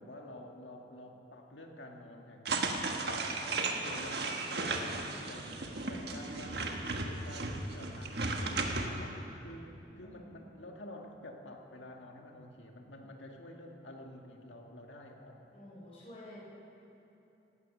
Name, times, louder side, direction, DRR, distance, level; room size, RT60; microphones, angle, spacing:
voice 1, 0.0-15.4, left 1 dB, 85° left, 2 dB, 1.9 m, -49 dB
sound 1, 2.5-8.9, right 3 dB, 60° right, 1.3 m, -35 dB
voice 2, 9.9-10.4 15.5-16.4, left 1 dB, 30° left, -7 dB, 4.4 m, -52 dB
17.5 x 13.5 x 6.1 m, 2.9 s
head